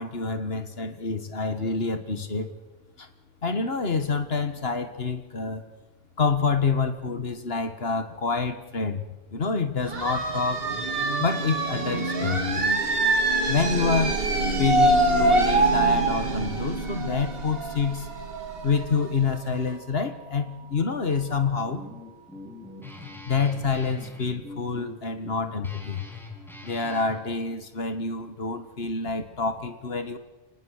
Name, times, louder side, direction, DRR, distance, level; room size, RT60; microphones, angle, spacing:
voice 1, 0.0-2.5 3.0-3.1 3.4-5.7 6.2-9.0 9.3-10.7 11.2-12.7 13.5-14.2 14.6-18.1 18.6-21.8 23.3-26.0 26.6-30.2, left 4 dB, 60° left, 10 dB, 1.8 m, -27 dB
sound 1, 9.8-19.3, right 2 dB, 55° right, 2.5 m, -25 dB
sound 2, 12.7-22.2, right 8 dB, 90° right, 1.4 m, -38 dB
Guitar, 21.4-27.2, left 2 dB, ahead, 4.0 m, -43 dB
25.0 x 19.5 x 6.5 m, 1.1 s
omnidirectional pair, 1.1 m